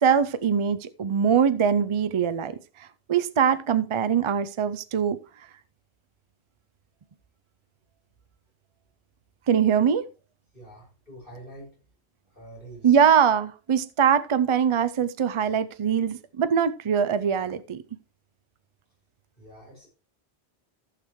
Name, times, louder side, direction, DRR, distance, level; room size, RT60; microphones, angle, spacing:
voice 1, 0.0-2.5 3.1-5.2 9.5-10.0 12.8-17.8, right 7 dB, 50° right, 13 dB, 0.3 m, -22 dB
voice 2, 10.5-11.8 12.3-13.0 19.4-19.9, right 1 dB, 50° left, -3 dB, 5.9 m, -46 dB
15.0 x 6.7 x 3.1 m, 0.34 s
omnidirectional pair, 1.1 m